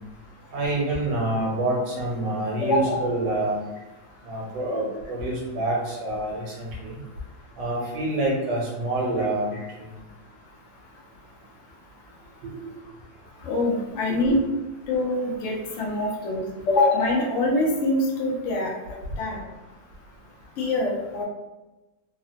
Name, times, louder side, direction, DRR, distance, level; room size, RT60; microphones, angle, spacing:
voice 1, 0.5-3.6 4.2-7.0 7.6-9.5 9.8-9.9 12.4-12.7 14.1-14.4, right 2 dB, 70° right, -4 dB, 1.6 m, -27 dB
voice 2, 2.6-3.0 13.4-14.4 14.9-16.4 16.7-18.7 19.2-19.4 20.6-21.2, left 2 dB, 90° left, -2 dB, 0.6 m, -24 dB
3.7 x 2.0 x 2.7 m, 1.1 s
omnidirectional pair, 2.1 m